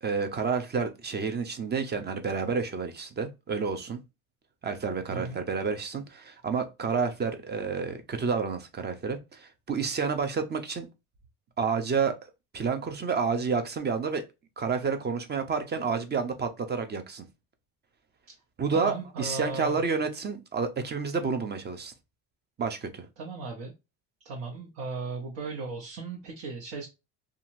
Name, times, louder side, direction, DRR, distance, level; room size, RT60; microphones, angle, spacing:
voice 1, 0.0-4.0 4.6-10.9 11.6-12.2 12.5-14.2 14.6-17.3 18.6-21.9 22.6-23.1, right 5 dB, 25° right, 0.7 m, -30 dB
voice 2, 5.1-5.4 18.7-19.8 23.2-23.7 24.2-26.9, right 3 dB, 65° right, 1.1 m, -36 dB
2.8 x 2.5 x 2.5 m
supercardioid pair, 100°, 41 cm